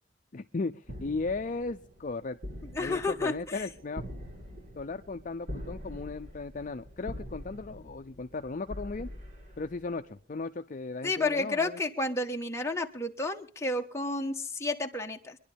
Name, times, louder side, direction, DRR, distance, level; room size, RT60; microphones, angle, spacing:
voice 1, 0.3-2.4 2.8-4.0 4.7-9.1 9.6-11.8, left 3 dB, 45° left, 8 dB, 0.6 m, -36 dB
sound 1, 0.8-10.1, equal, 50° right, 7.6 m, -44 dB
voice 2, 2.7-3.6 11.0-15.4, left 2 dB, 15° left, 2 dB, 1.2 m, -31 dB
24.5 x 11.0 x 3.5 m, 0.41 s
head